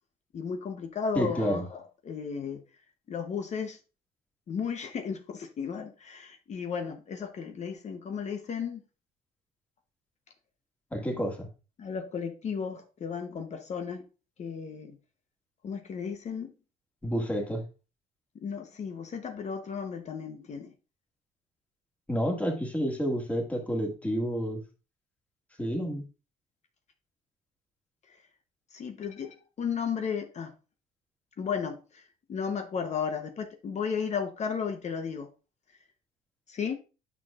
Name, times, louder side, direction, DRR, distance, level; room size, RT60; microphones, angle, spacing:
voice 1, 0.3-2.6 3.1-3.8 4.5-8.8 11.8-14.1 14.4-15.0 15.6-16.5 18.4-20.7 28.7-30.5 31.4-32.0 32.3-35.3 36.5-36.7, left 6 dB, 40° left, 0.9 m, -34 dB
voice 2, 1.2-1.7 10.9-11.5 17.0-17.7 22.1-24.6 25.6-26.0, equal, 10° left, 1.9 m, -29 dB
9.3 x 6.1 x 2.4 m
cardioid pair, 110°, 17 cm